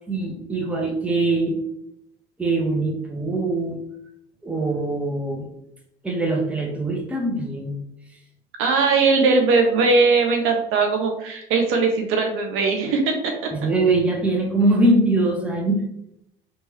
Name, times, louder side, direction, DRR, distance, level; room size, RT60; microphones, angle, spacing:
voice 1, 0.1-1.6 2.4-3.8 4.4-5.5 6.0-7.8 13.5-15.8, right 2 dB, 5° right, 0 dB, 0.6 m, -22 dB
voice 2, 8.6-13.5, right 4 dB, 45° right, 3 dB, 0.5 m, -20 dB
2.9 x 2.2 x 2.9 m, 0.78 s
figure-of-eight pair, 60°, 30 cm